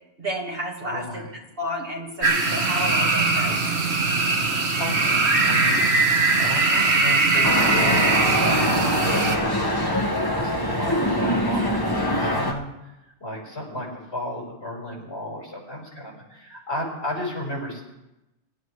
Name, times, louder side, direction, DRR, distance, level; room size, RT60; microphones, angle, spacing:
voice 1, 0.2-1.2 1.6-3.6, equal, 55° right, -1 dB, 2.5 m, -31 dB
voice 2, 0.8-1.4 4.8-12.9 13.2-17.8, left 1 dB, 70° left, -3 dB, 5.0 m, -34 dB
sound 1, 2.2-9.4, right 3 dB, 70° right, 1.6 m, -21 dB
sound 2, 7.4-12.5, equal, 20° left, 1.5 m, -23 dB
23.5 x 11.0 x 3.2 m, 0.95 s
omnidirectional pair, 1.1 m